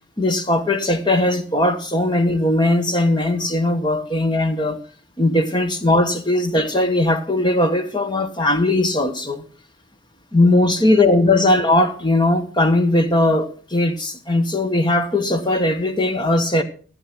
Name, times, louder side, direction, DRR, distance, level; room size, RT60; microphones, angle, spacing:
voice 1, 0.2-4.8 5.2-9.4 10.3-16.6, left 1 dB, 20° left, 1.4 m, -19 dB
15.5 x 9.6 x 6.1 m
head